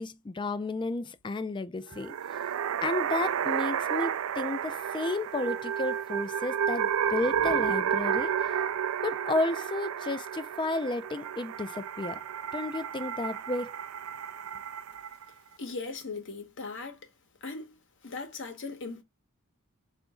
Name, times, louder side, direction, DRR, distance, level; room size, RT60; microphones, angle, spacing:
voice 1, 0.0-2.1 2.8-8.3 9.0-12.2 12.5-13.8, left 2 dB, 20° left, 0.4 m, -32 dB
sound 1, 1.9-15.3, right 8 dB, 70° right, 0.3 m, -31 dB
sound 2, 6.3-9.0, left 3 dB, 85° left, 0.9 m, -47 dB
voice 2, 15.6-17.0 17.4-17.7 18.0-19.0, left 3 dB, 60° left, 1.0 m, -38 dB
3.8 x 2.5 x 3.4 m
head